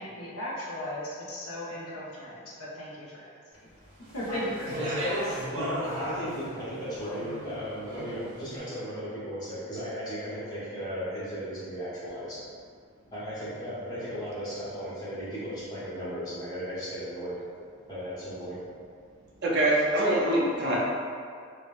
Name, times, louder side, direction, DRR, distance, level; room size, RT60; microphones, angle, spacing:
voice 1, 0.0-3.3 4.1-4.8, left 1 dB, 90° left, -5 dB, 0.7 m, -36 dB
Speech, 4.0-8.4, equal, 80° right, 0.8 m, -35 dB
voice 2, 4.3-5.0 5.5-12.4 13.1-17.4 17.9-18.6, equal, 15° left, -11 dB, 0.7 m, -36 dB
voice 3, 19.4-20.8, right 1 dB, 50° right, -5 dB, 0.5 m, -24 dB
3.4 x 2.0 x 2.3 m, 2.2 s
head